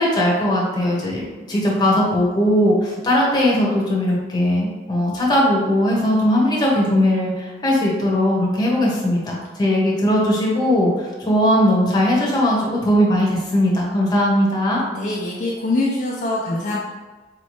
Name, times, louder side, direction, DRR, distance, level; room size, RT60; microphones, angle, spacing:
voice 1, 0.0-14.8, left 1 dB, 25° left, -4 dB, 0.9 m, -19 dB
voice 2, 14.9-16.8, left 2 dB, 45° left, -3 dB, 0.4 m, -23 dB
4.2 x 2.7 x 3.1 m, 1.3 s
head